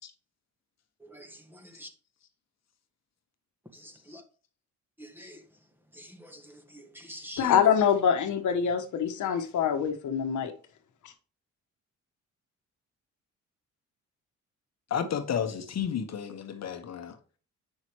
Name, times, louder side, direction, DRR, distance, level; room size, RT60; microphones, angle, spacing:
voice 1, 3.8-4.2 5.0-5.4 6.0-6.4 6.7-7.5, equal, 5° right, 1.7 m, -46 dB
voice 2, 7.4-10.5 11.0-11.1, left 8 dB, 75° left, 1.4 m, -25 dB
voice 3, 14.9-17.2, left 8 dB, 60° left, 1.3 m, -32 dB
8.6 x 6.0 x 3.1 m
cardioid pair, 95°, 30 cm